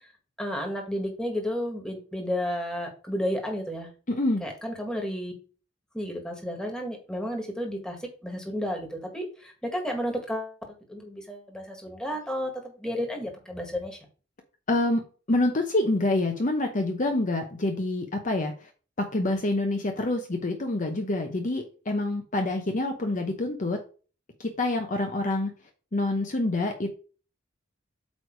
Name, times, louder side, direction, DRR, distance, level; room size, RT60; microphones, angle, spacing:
voice 1, 0.4-3.9 4.4-5.3 5.9-8.0 8.2-12.5 12.8-14.0, equal, 5° left, 2 dB, 1.8 m, -32 dB
voice 2, 4.1-4.5 14.7-18.7 19.0-23.8 24.4-25.5 25.9-26.9, left 2 dB, 40° left, 4 dB, 0.9 m, -27 dB
8.4 x 3.3 x 4.6 m, 0.36 s
head